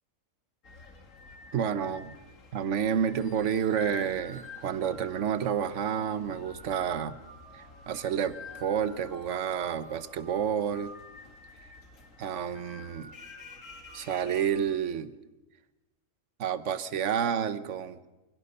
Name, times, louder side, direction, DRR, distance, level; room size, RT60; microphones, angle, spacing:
sound 1, 0.6-14.7, left 3 dB, 65° left, 2.5 m, -48 dB
voice 1, 1.5-2.2 2.5-7.2 7.5-8.3 8.6-10.9 12.2-13.1 13.9-15.1 16.4-18.0, right 8 dB, 60° right, 13 dB, 1.2 m, -30 dB
30.0 x 17.0 x 5.5 m, 1.1 s
omnidirectional pair, 1.5 m